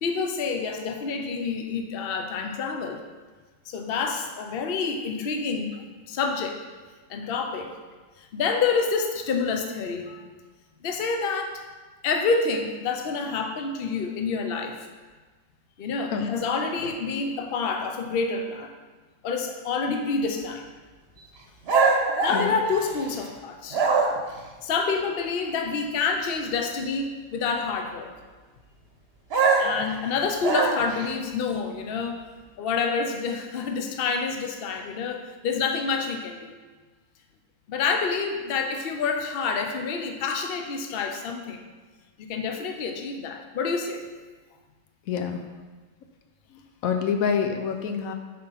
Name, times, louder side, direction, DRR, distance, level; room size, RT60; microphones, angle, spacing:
voice 1, 0.0-3.0 3.7-5.7 6.1-6.6 7.1-7.7 8.2-10.2 10.8-11.6 12.0-14.9 15.8-18.7 19.2-20.7 22.2-23.8 24.6-28.1 29.6-32.2 32.6-36.6 37.7-41.6 42.2-44.0, left 5 dB, 50° left, 4 dB, 0.8 m, -28 dB
sound 1, 21.7-23.3 23.7-24.4 29.3-31.1, right 4 dB, 50° right, 1.0 m, -23 dB
voice 2, 45.1-45.4 46.8-48.1, left 6 dB, 80° left, 5 dB, 1.1 m, -26 dB
7.5 x 4.3 x 5.7 m, 1.3 s
omnidirectional pair, 1.5 m